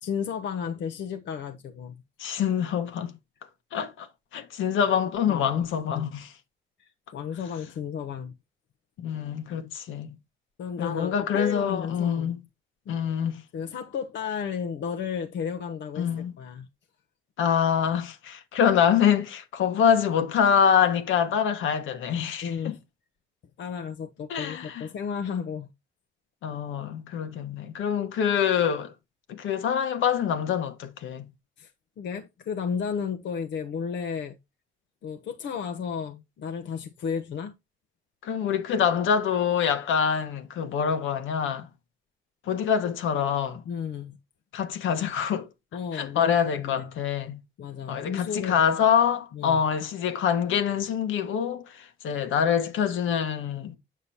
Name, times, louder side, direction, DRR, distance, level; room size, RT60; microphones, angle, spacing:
voice 1, 0.0-2.0 5.3-6.1 6.8-8.3 10.6-12.4 12.9-13.0 13.5-16.7 22.4-22.8 23.6-25.7 31.6-31.7 32.0-34.4 35.0-37.5 43.7-44.2 45.7-46.3 46.6-47.0 47.6-48.6 49.3-49.6, left 7 dB, 65° left, 0.9 m, -33 dB
voice 2, 2.2-3.1 3.7-4.1 4.3-6.3 9.0-10.1 10.8-12.4 12.9-13.4 16.0-16.3 17.4-22.7 24.3-24.7 26.4-28.9 29.3-31.3 38.2-41.7 42.5-43.6 44.5-45.5 45.9-47.4 47.9-53.8, left 8 dB, 80° left, 1.4 m, -25 dB
8.3 x 6.8 x 2.9 m
cardioid pair, 90°, 20 cm